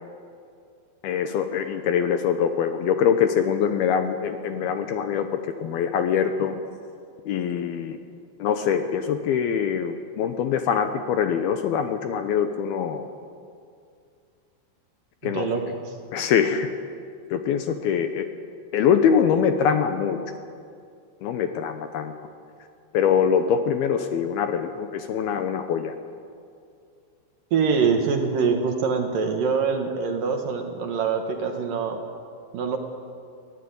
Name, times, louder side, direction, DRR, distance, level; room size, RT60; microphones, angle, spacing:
voice 1, 1.0-6.6 7.3-8.0 8.4-13.1 15.2-15.5 16.1-16.7 17.3-18.3 18.7-20.2 21.2-22.1 22.9-25.9, left 7 dB, 70° left, 8 dB, 2.6 m, -23 dB
voice 2, 15.2-16.0 27.5-32.0 32.5-32.8, right 5 dB, 60° right, 4 dB, 2.8 m, -24 dB
23.5 x 16.5 x 9.6 m, 2.3 s
omnidirectional pair, 5.1 m